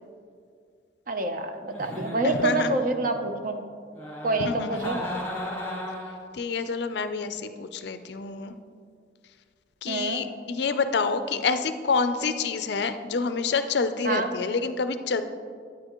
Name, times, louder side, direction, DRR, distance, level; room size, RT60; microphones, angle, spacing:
voice 1, 1.1-3.6 4.2-5.0 9.9-10.2 14.0-14.3, right 2 dB, 45° right, 6 dB, 0.6 m, -27 dB
Giggle, 1.7-3.2 3.9-6.3, left 1 dB, 10° left, 1.7 m, -35 dB
voice 2, 2.2-2.7 4.4-4.9 6.3-8.6 9.8-15.2, left 4 dB, 60° left, 10 dB, 0.4 m, -27 dB
9.4 x 8.9 x 2.9 m, 2.2 s
head